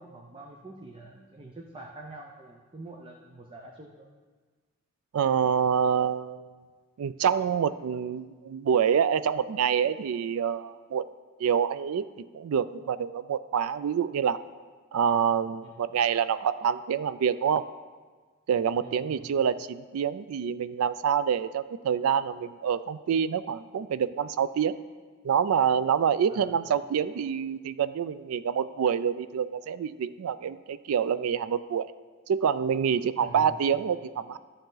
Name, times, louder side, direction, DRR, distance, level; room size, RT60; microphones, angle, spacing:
voice 1, 0.0-4.1 15.6-15.9 18.8-19.3 26.3-26.7 33.2-33.6, right 2 dB, 25° right, 0 dB, 0.6 m, -46 dB
voice 2, 5.1-6.5 7.0-11.0 11.4-14.4 14.9-17.6 18.5-24.8 25.2-31.9 32.3-34.4, right 7 dB, 85° right, 15 dB, 0.3 m, -27 dB
11.5 x 6.6 x 3.9 m, 1.4 s
head